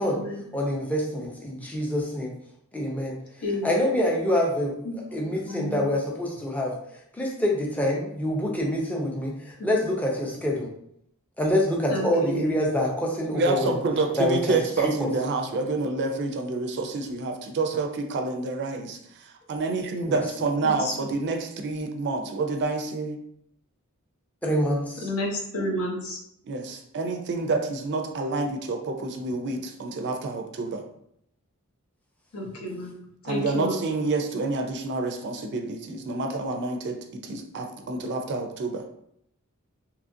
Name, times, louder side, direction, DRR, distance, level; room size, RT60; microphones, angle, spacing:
voice 1, 0.5-2.3 2.7-3.1 3.4-6.7 7.2-10.7 11.4-13.8 14.2-14.6 14.8-15.1 20.1-20.2 24.4-25.1 32.9-33.1, left 1 dB, 5° left, -2 dB, 0.4 m, -26 dB
voice 2, 5.5-5.8 11.9-12.3 25.0-26.2 32.3-32.9 33.3-33.8, left 1 dB, 75° left, -1 dB, 0.7 m, -30 dB
voice 3, 13.3-23.2 26.4-30.8 33.2-38.8, right 3 dB, 50° right, 4 dB, 0.4 m, -28 dB
2.8 x 2.4 x 2.5 m, 0.72 s
head